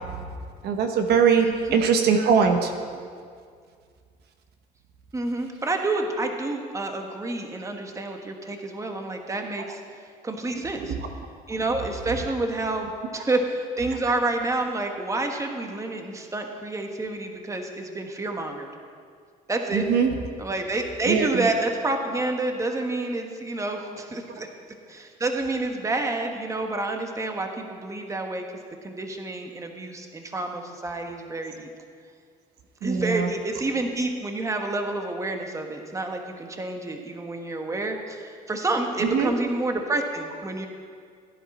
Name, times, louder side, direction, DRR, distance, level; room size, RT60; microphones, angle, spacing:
voice 1, 0.6-2.7 10.6-11.0 19.7-20.1 21.1-21.5 32.8-33.3 39.0-39.3, right 6 dB, 75° right, 5 dB, 1.1 m, -22 dB
voice 2, 5.1-9.8 10.2-10.9 11.5-18.7 19.5-19.9 20.4-24.5 24.9-28.4 28.8-31.7 32.8-40.7, right 2 dB, 20° right, 4 dB, 1.2 m, -29 dB
16.0 x 10.5 x 4.3 m, 2.1 s
cardioid pair, 110°, 17 cm